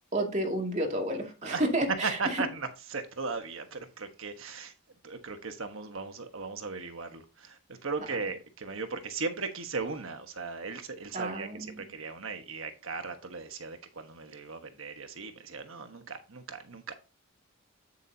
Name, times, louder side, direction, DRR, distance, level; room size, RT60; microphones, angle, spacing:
voice 1, 0.1-2.4 11.1-11.8, right 1 dB, 35° right, 2.4 m, -31 dB
voice 2, 2.0-4.7 5.0-11.5 11.8-16.9, right 4 dB, 60° right, 1.3 m, -37 dB
8.6 x 8.3 x 2.8 m
head